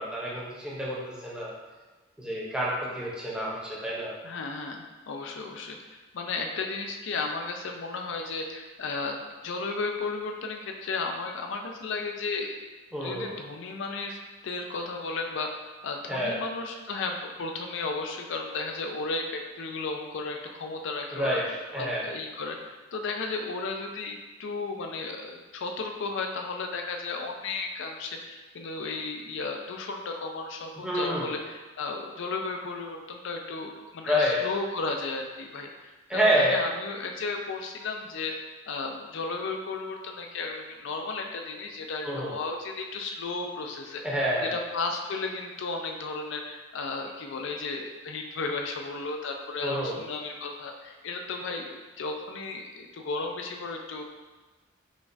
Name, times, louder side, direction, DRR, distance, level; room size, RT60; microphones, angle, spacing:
voice 1, 0.0-1.5 2.2-4.1 12.9-13.3 16.1-16.4 21.1-21.4 21.7-22.0 30.8-31.3 34.0-34.4 36.1-36.6 42.0-42.3 44.0-44.5 49.6-50.0, equal, 5° right, -7 dB, 0.7 m, -28 dB
voice 2, 4.2-5.8 6.1-12.6 12.9-14.2 14.4-15.5 15.8-21.4 21.8-54.0, left 3 dB, 65° left, 3 dB, 0.5 m, -34 dB
5.1 x 2.3 x 2.6 m, 1.2 s
head